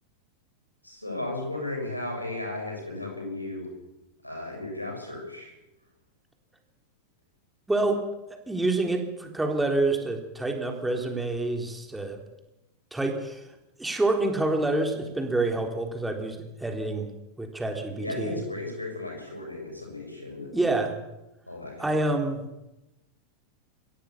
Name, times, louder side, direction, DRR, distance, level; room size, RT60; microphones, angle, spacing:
voice 1, 0.8-3.7 4.2-5.5 18.0-20.6 21.5-21.9, left 2 dB, 85° left, 1 dB, 7.5 m, -35 dB
voice 2, 7.7-8.0 8.5-12.2 12.9-13.4 13.8-17.1 17.4-18.3 20.5-21.0 21.8-22.4, right 2 dB, 5° right, 3 dB, 3.6 m, -27 dB
23.5 x 17.0 x 7.2 m, 0.97 s
figure-of-eight pair, 90°, 0 cm